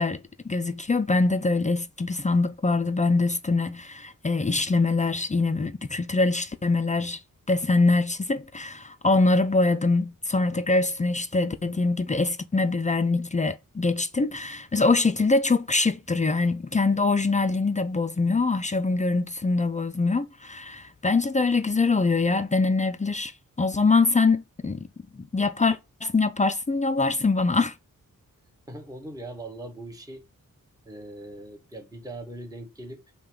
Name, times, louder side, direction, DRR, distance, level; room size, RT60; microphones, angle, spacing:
voice 1, 0.0-7.2 7.5-23.3 23.6-24.9 25.1-27.7, left 3 dB, 25° left, 0.3 m, -24 dB
voice 2, 28.7-30.2 30.8-33.1, right 1 dB, 10° right, 1.0 m, -40 dB
5.5 x 2.2 x 3.8 m
wide cardioid pair, 75°, 34 cm